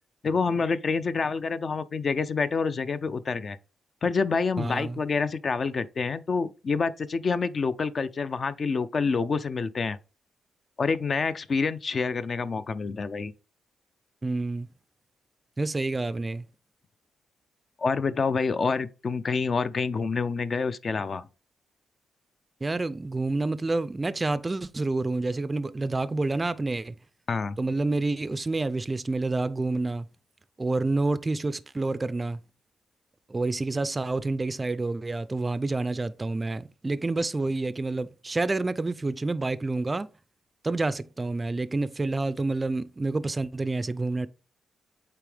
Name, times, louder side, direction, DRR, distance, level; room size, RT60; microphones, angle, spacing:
voice 1, 0.2-3.6 4.0-10.0 10.8-13.3 17.8-21.3 27.3-27.6, left 4 dB, 45° left, 0.4 m, -27 dB
voice 2, 4.6-5.0 14.2-14.7 15.6-16.5 22.6-26.9 27.6-30.1 30.6-32.4 33.3-40.1 40.6-44.3, right 2 dB, 25° right, 0.4 m, -28 dB
8.4 x 3.4 x 3.3 m
cardioid pair, 100°, 0 cm